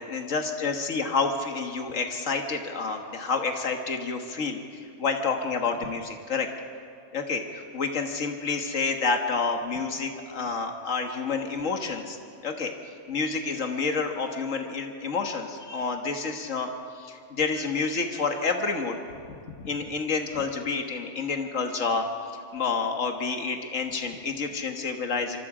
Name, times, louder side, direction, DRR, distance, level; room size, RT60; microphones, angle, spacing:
voice 1, 0.0-6.5 7.1-12.2 12.4-12.7 13.1-16.7 17.0-19.0 19.3-22.1 22.5-25.4, left 4 dB, 90° left, 4 dB, 1.8 m, -29 dB
25.5 x 24.0 x 5.0 m, 2.4 s
omnidirectional pair, 1.3 m